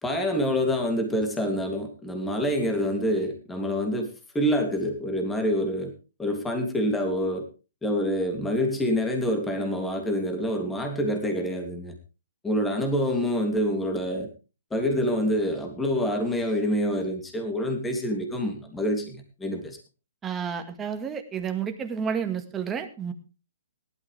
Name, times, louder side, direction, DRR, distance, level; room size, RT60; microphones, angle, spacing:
voice 1, 0.0-4.1 4.3-5.9 6.2-7.4 7.8-11.9 12.4-14.3 14.7-19.8, equal, 10° left, 3 dB, 2.9 m, -26 dB
voice 2, 20.2-23.1, right 7 dB, 15° right, 6 dB, 1.9 m, -30 dB
18.0 x 12.0 x 3.5 m, 0.32 s
figure-of-eight pair, 130°, 0 cm